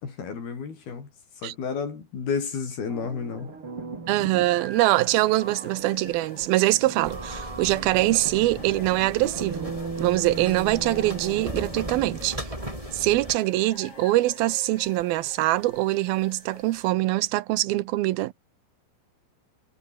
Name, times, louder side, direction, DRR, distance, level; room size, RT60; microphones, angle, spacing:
voice 1, 0.0-1.1 1.4-3.5, left 5 dB, 80° left, 6.9 m, -31 dB
sound 1, 2.9-12.4, right 4 dB, 35° right, 5.0 m, -38 dB
voice 2, 4.1-12.4 12.9-18.3, right 17 dB, 80° right, 2.7 m, -23 dB
sound 2, 4.7-16.9, left 3 dB, 35° left, 6.7 m, -48 dB
sound 3, 7.0-13.4, right 1 dB, 10° right, 6.5 m, -38 dB
omnidirectional pair, 4.3 m